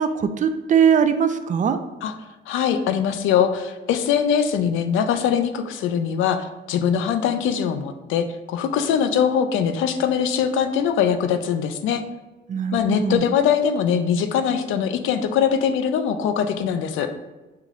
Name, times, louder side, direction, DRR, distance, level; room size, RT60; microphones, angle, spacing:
voice 1, 0.0-1.8 12.5-13.2, right 7 dB, 40° right, 9 dB, 0.4 m, -20 dB
voice 2, 2.5-12.0 12.7-17.1, left 8 dB, 85° left, 9 dB, 0.4 m, -22 dB
5.7 x 3.0 x 2.4 m, 1.1 s
cardioid pair, 90°, 20 cm